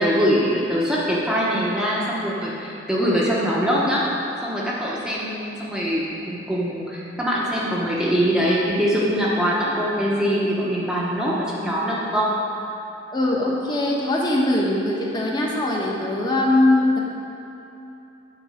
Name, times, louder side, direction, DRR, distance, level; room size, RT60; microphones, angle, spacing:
voice 1, 0.0-4.0 4.4-12.3, equal, 5° right, -6 dB, 1.0 m, -23 dB
voice 2, 13.1-17.0, left 1 dB, 20° left, -3 dB, 1.3 m, -21 dB
10.5 x 4.7 x 7.3 m, 2.9 s
head